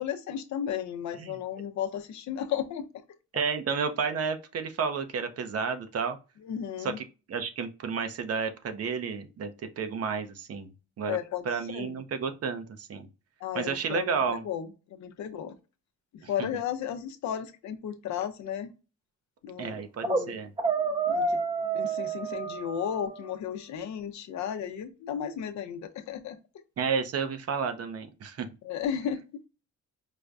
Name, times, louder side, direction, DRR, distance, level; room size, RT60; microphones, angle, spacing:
voice 1, 0.0-2.9 6.4-7.0 11.1-11.4 11.7-12.0 13.4-15.6 16.1-18.7 19.4-20.3 21.1-21.4 21.7-26.4 28.6-29.5, left 9 dB, 70° left, 0.6 m, -34 dB
voice 2, 3.3-6.2 6.8-10.7 11.0-11.2 11.4-13.1 13.5-14.4 16.2-16.3 19.6-20.5 26.8-28.5, right 5 dB, 55° right, 0.7 m, -31 dB
sound 1, 19.8-20.3 20.6-23.4, right 4 dB, 15° right, 0.5 m, -29 dB
4.9 x 2.2 x 2.5 m
cardioid pair, 90°, 30 cm